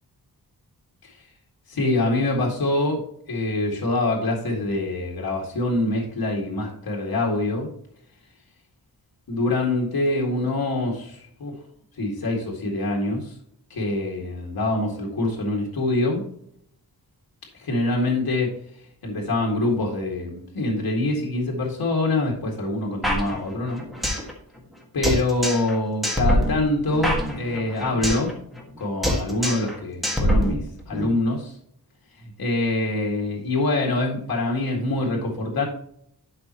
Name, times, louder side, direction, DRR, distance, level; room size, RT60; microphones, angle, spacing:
voice 1, 1.7-7.7 9.3-11.5 12.0-13.3 13.7-16.2 17.5-18.5 19.0-23.8 24.9-31.6 32.2-35.6, left 2 dB, 75° left, -1 dB, 2.0 m, -25 dB
sound 1, 23.0-24.3 24.6-24.7 25.0-25.8 26.0-28.3 28.6-28.8 29.0-29.8 30.0-31.0, equal, ahead, 1.6 m, -24 dB
12.0 x 5.2 x 2.9 m, 0.68 s
wide cardioid pair, 170°, 38 cm